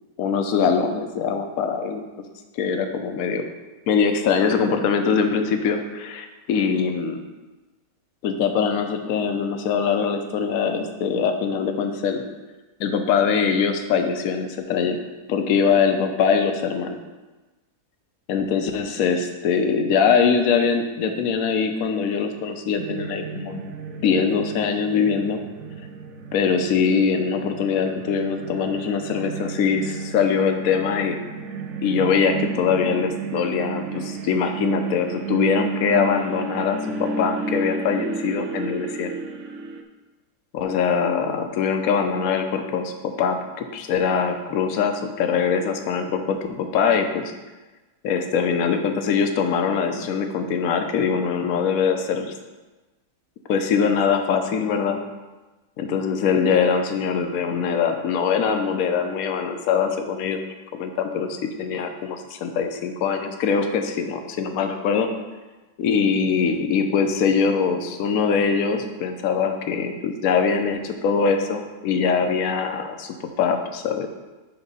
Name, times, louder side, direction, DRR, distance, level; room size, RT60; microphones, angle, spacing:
voice 1, 0.2-2.0 2.5-3.4 3.9-7.2 8.2-12.2 12.8-15.0 15.3-17.0 18.3-23.6 24.0-25.4 26.3-31.2 31.8-39.1 40.5-47.3 48.0-52.3 53.5-55.0 55.8-65.1 65.8-74.1, left 6 dB, 65° left, 6 dB, 1.0 m, -22 dB
sound 1, 22.8-39.8, right 5 dB, 70° right, 0.7 m, -32 dB
8.8 x 2.9 x 5.4 m, 1.2 s
omnidirectional pair, 1.8 m